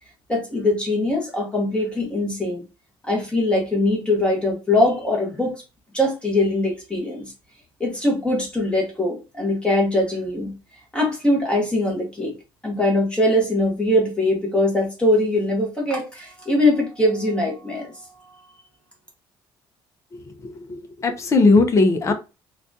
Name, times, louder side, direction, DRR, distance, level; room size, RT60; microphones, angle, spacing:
voice 1, 0.3-2.6 3.0-5.6 5.9-7.3 7.8-10.5 10.9-12.4 12.6-18.1, left 1 dB, 10° left, 1.0 m, -22 dB
voice 2, 20.1-22.1, left 3 dB, 30° left, 0.6 m, -19 dB
4.0 x 2.3 x 2.6 m
cardioid pair, 130°, 9 cm